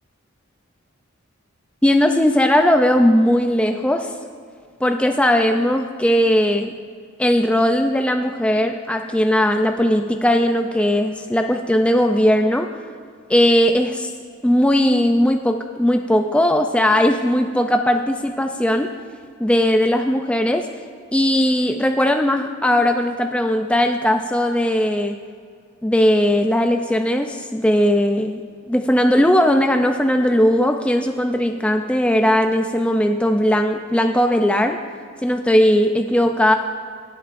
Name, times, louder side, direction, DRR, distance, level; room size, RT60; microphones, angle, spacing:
voice 1, 1.8-4.1 4.8-6.7 7.2-12.7 13.3-14.1 14.4-18.9 19.4-20.7 21.1-25.2 25.8-28.4 28.7-34.8 35.2-36.5, equal, 5° left, 5 dB, 0.4 m, -18 dB
18.0 x 10.0 x 2.6 m, 2.2 s
head